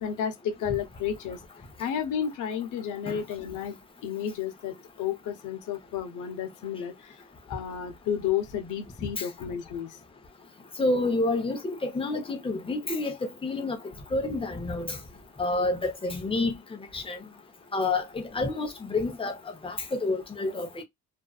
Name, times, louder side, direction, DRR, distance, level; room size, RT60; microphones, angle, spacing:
voice 1, 0.0-1.4 1.8-3.8 4.0-7.2 7.5-10.0, left 8 dB, 85° left, 0.7 m, -32 dB
voice 2, 10.8-13.8 14.1-15.0 15.4-16.6 16.9-17.2 17.7-19.4 19.6-20.8, left 2 dB, 20° left, 0.8 m, -28 dB
2.5 x 2.3 x 2.3 m
cardioid pair, 90°, 30 cm